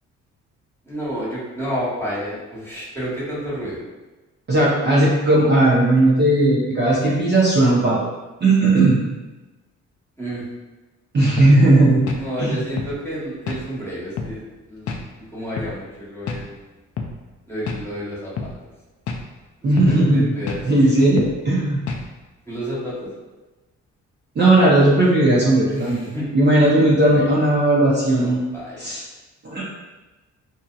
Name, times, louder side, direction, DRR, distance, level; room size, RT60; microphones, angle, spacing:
voice 1, 0.8-3.8 10.2-10.4 12.1-15.0 15.3-16.7 17.5-18.5 19.8-21.0 22.5-23.1 25.7-26.3 27.1-27.3 28.2-28.9, equal, 10° left, -9 dB, 1.3 m, -30 dB
voice 2, 4.5-8.0 8.4-9.0 11.1-12.0 12.4-12.6 19.6-20.3 20.6-21.8 24.3-26.1 26.3-28.5 28.8-29.0 29.4-29.6, right 2 dB, 35° right, -7 dB, 0.8 m, -16 dB
sound 1, 11.4-11.6 12.1-12.3 12.8-13.0 13.5-13.6 14.2-14.4 14.9-15.0 15.6-15.8 16.3-16.5 17.0-17.1 17.7-17.8 18.4-18.5 19.1-19.3 19.8-20.0 20.5-20.6 21.2-21.4 21.9-22.1, left 5 dB, 50° left, 0.4 m, -28 dB
2.7 x 2.7 x 2.4 m, 1.1 s
cardioid pair, 90°, 30 cm